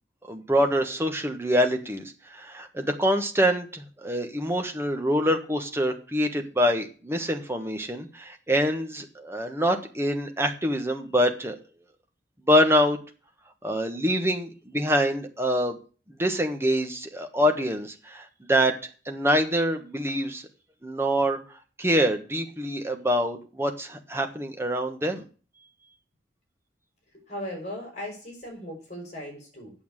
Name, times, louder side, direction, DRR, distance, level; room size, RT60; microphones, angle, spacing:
voice 1, 0.3-11.6 12.4-13.0 13.6-15.8 16.2-18.8 19.0-20.5 20.8-21.4 21.8-25.2, equal, 15° right, 5 dB, 1.3 m, -25 dB
voice 2, 27.3-29.7, left 1 dB, 40° left, 1 dB, 6.0 m, -37 dB
8.8 x 7.1 x 7.3 m, 0.37 s
head